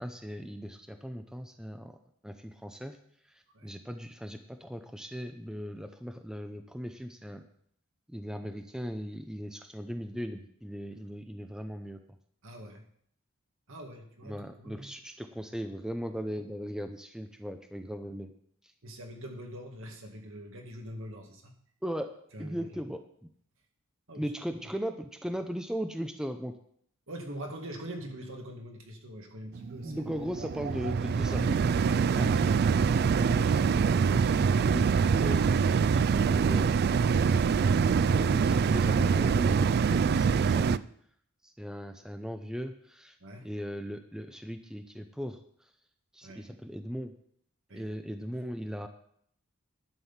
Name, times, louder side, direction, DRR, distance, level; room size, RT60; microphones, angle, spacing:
voice 1, 0.0-1.9 2.2-3.0 3.2-7.4 8.1-12.0 14.2-18.3 21.8-22.1 22.4-23.0 24.1-26.5 29.8-31.6 32.1-32.9 33.2-36.7 38.0-40.8 41.4-43.2 43.4-45.7 46.1-47.1 47.7-48.9, equal, 5° right, 7 dB, 0.6 m, -38 dB
voice 2, 12.4-12.9 13.7-14.9 18.8-21.5 22.3-22.7 24.1-24.6 27.1-30.0 32.1-32.4 43.2-43.5 46.2-46.5 47.7-47.8, right 1 dB, 65° right, 3 dB, 2.1 m, -43 dB
sound 1, 29.5-40.8, right 6 dB, 50° right, 0.3 m, -25 dB
11.5 x 6.2 x 7.3 m, 0.64 s
head